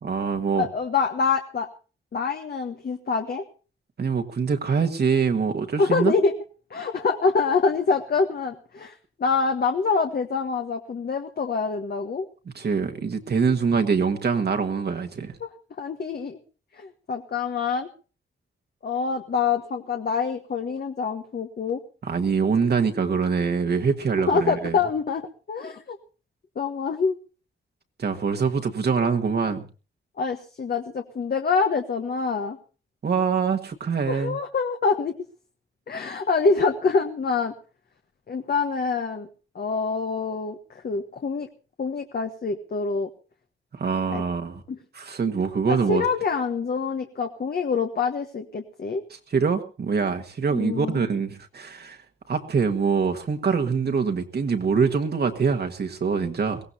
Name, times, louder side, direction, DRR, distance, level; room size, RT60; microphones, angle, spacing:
voice 1, 0.0-0.7 4.0-6.1 12.5-15.3 22.0-24.8 28.0-29.7 33.0-34.4 43.7-44.6 44.9-46.0 49.3-52.0 52.3-56.6, right 5 dB, 50° right, 1.6 m, -24 dB
voice 2, 0.5-1.7 2.1-3.4 5.8-6.3 6.7-8.9 9.2-12.3 15.4-15.5 15.8-16.4 16.7-17.9 18.8-21.8 24.3-26.0 26.5-27.2 30.2-32.6 34.1-35.2 35.9-37.5 38.3-39.3 39.5-41.5 41.8-43.1 44.1-44.2 44.7-44.8 45.7-49.0 50.5-51.0, left 4 dB, 50° left, 1.4 m, -25 dB
22.5 x 17.5 x 2.8 m
wide cardioid pair, 140°, 21 cm